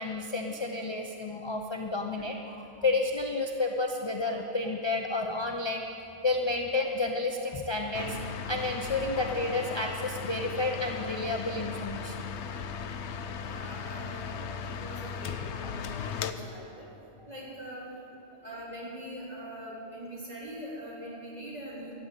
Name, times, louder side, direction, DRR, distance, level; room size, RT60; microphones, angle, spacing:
voice 1, 0.0-5.9 6.2-12.2 15.6-15.7 16.0-16.1, left 3 dB, 30° left, 2 dB, 0.7 m, -31 dB
sound 1, 7.9-16.3, left 6 dB, 80° left, 1.0 m, -37 dB
voice 2, 13.4-16.9 17.3-17.9 18.4-21.9, equal, 35° right, -7 dB, 3.9 m, -42 dB
13.0 x 8.0 x 9.7 m, 2.7 s
omnidirectional pair, 1.1 m